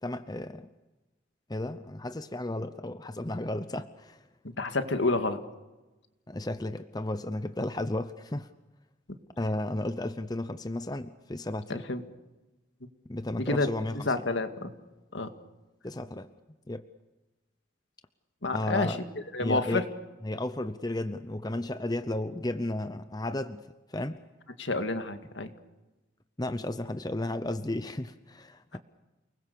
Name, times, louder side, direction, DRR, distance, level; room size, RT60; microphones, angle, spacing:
voice 1, 0.0-0.7 1.5-4.2 6.3-8.5 9.4-11.8 13.1-14.0 15.8-16.3 16.7-16.8 18.5-19.0 19.4-19.8 20.2-24.2 26.4-28.8, left 1 dB, 20° left, 11 dB, 0.7 m, -33 dB
voice 2, 4.4-5.4 11.7-12.0 13.4-13.7 14.1-14.7 15.1-15.3 18.4-19.0 19.3-19.8 24.6-25.5, left 2 dB, 70° left, 7 dB, 2.0 m, -29 dB
29.5 x 21.0 x 6.9 m, 1.1 s
head